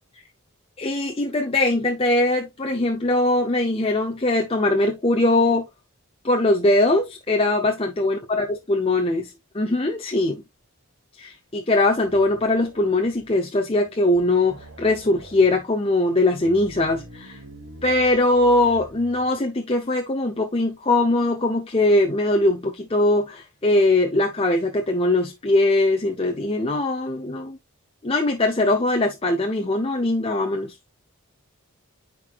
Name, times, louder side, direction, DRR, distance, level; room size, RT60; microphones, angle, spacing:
voice 1, 0.8-5.7 6.2-10.4 11.2-17.4 17.8-27.6 28.0-30.7, left 2 dB, 25° left, 0.7 m, -21 dB
sound 1, 11.9-13.4 13.7-13.8 14.1-15.6 16.3-19.4, right 1 dB, 65° right, 1.5 m, -45 dB
10.0 x 4.7 x 2.4 m
head